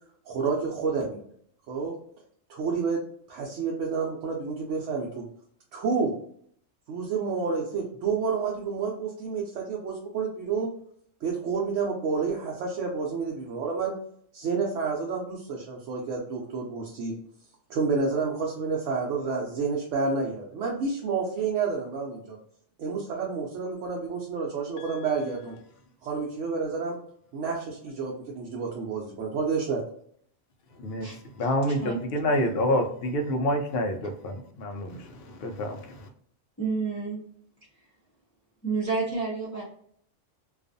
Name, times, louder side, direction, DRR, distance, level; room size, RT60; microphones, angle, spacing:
voice 1, 0.3-1.2 1.7-2.0 2.5-3.0 3.3-5.2 5.7-6.1 6.9-10.7 11.2-13.9 14.3-17.1 17.7-22.4 22.8-25.6 26.0-27.0 27.3-29.8, right 5 dB, 80° right, 0.9 m, -29 dB
voice 2, 30.7-36.1, equal, 65° left, 0.7 m, -28 dB
voice 3, 36.6-37.2 38.6-39.6, right 4 dB, 15° left, 0.6 m, -29 dB
2.4 x 2.3 x 2.5 m
omnidirectional pair, 1.2 m